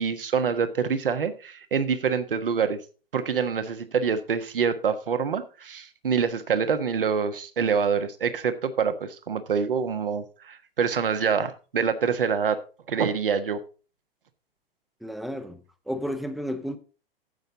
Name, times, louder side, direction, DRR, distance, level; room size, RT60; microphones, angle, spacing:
voice 1, 0.0-2.8 3.1-12.6 12.9-13.6, right 6 dB, 65° right, 1.4 m, -26 dB
voice 2, 15.0-15.6 15.9-16.8, equal, ahead, 0.7 m, -32 dB
12.0 x 8.0 x 3.8 m
figure-of-eight pair, 105°, 30 cm